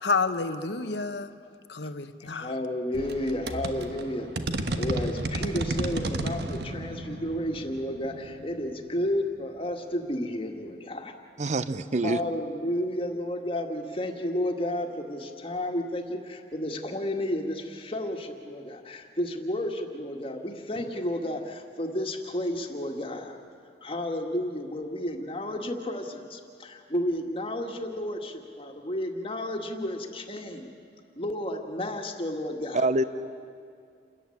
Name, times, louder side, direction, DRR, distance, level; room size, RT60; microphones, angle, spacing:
voice 1, 0.0-1.3 1.7-2.5, left 4 dB, 75° left, 10 dB, 1.1 m, -29 dB
voice 2, 2.3-11.1 12.0-23.4 23.8-30.7 31.2-32.8, left 1 dB, 30° left, 3 dB, 1.8 m, -32 dB
sound 1, 2.9-9.4, right 2 dB, 70° right, 1.3 m, -33 dB
voice 3, 11.4-12.2 32.7-33.0, right 2 dB, 40° right, 13 dB, 0.7 m, -25 dB
28.5 x 14.5 x 9.9 m, 2.4 s
head